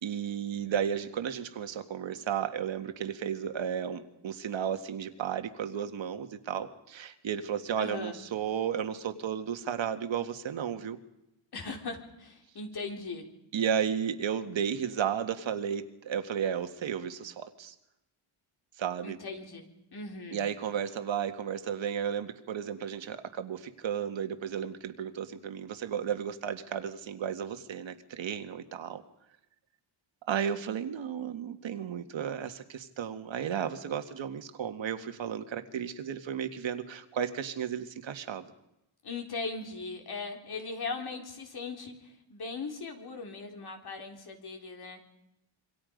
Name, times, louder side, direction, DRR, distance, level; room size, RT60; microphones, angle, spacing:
voice 1, 0.0-11.0 13.5-17.8 18.8-19.2 20.3-29.0 30.3-38.5, right 8 dB, 65° right, 8 dB, 1.8 m, -33 dB
voice 2, 7.8-8.1 11.5-13.2 19.0-19.7 19.9-20.4 39.0-41.9 42.3-45.0, left 4 dB, 50° left, 3 dB, 3.8 m, -39 dB
27.0 x 25.0 x 5.2 m, 0.86 s
wide cardioid pair, 165°, 50 cm